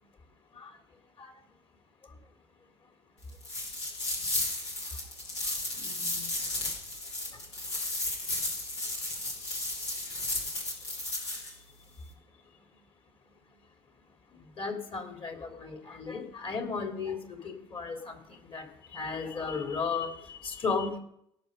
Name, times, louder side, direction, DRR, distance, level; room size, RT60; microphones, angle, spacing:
sound 1, 3.4-11.5, left 2 dB, 90° left, 2.7 m, -34 dB
voice 1, 5.7-6.4 7.3-7.4 10.4-11.1 11.5-11.6 12.0-12.1 14.3-21.0, left 5 dB, 40° left, 3 dB, 3.2 m, -36 dB
17.5 x 6.5 x 5.4 m, 0.73 s
hypercardioid pair, 55°, 14 cm